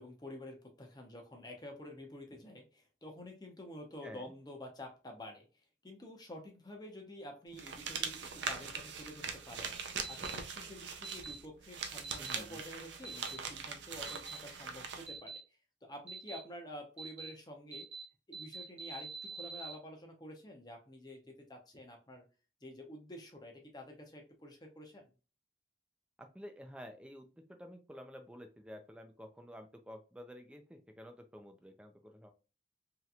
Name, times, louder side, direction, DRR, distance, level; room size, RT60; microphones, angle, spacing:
voice 1, 0.0-5.5 5.8-9.7 10.1-15.4 15.8-17.9 18.3-22.2 22.6-25.1, left 1 dB, 25° left, 2 dB, 0.7 m, -49 dB
sound 1, 7.6-15.1, right 6 dB, 90° right, 0.6 m, -41 dB
sound 2, 10.0-10.3 11.0-11.3 12.0-12.4 13.0-13.4 14.1-14.4 15.1-15.4 16.1-16.4 17.0-17.3 17.7-18.0 18.3-19.7, right 4 dB, 40° right, 1.0 m, -45 dB
voice 2, 12.2-12.7 26.2-32.3, equal, 5° right, 5 dB, 0.4 m, -51 dB
3.1 x 2.8 x 2.3 m, 0.34 s
head